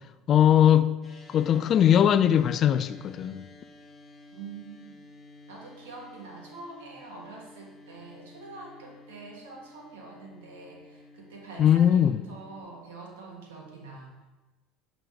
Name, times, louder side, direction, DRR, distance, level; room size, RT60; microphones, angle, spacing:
voice 1, 0.3-1.0 1.3-3.4 11.6-12.2, left 10 dB, 45° left, 0.3 m, -20 dB
sound 1, 1.0-12.6, left 2 dB, 15° left, 1.6 m, -52 dB
voice 2, 4.3-4.9 5.5-14.3, right 3 dB, 85° right, 1.5 m, -45 dB
6.4 x 3.9 x 4.6 m
supercardioid pair, 90°, 0 cm